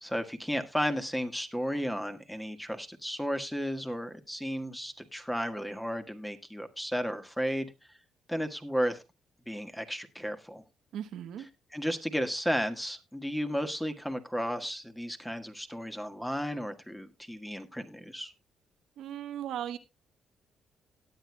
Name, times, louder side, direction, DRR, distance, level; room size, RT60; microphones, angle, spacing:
voice 1, 0.0-8.0 8.3-9.0 9.5-10.6 11.7-18.3, equal, 5° left, 1.5 m, -33 dB
voice 2, 10.9-11.5 19.0-19.8, right 10 dB, 75° right, 1.0 m, -37 dB
18.0 x 9.2 x 2.2 m
cardioid pair, 90°, 0 cm